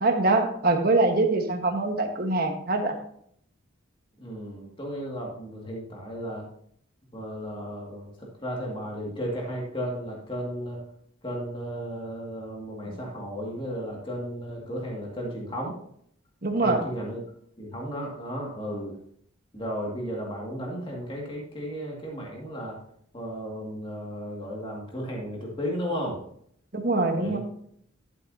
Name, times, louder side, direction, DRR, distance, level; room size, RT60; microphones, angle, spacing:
voice 1, 0.0-2.9 12.9-13.0 16.4-16.8 26.7-27.4, right 2 dB, 45° right, 4 dB, 1.4 m, -24 dB
voice 2, 4.2-6.5 7.1-10.8 11.2-15.8 16.6-17.2 17.6-19.0 19.5-22.8 23.1-26.2 27.2-27.4, equal, 25° left, -2 dB, 2.1 m, -34 dB
11.5 x 7.9 x 2.8 m, 0.66 s
head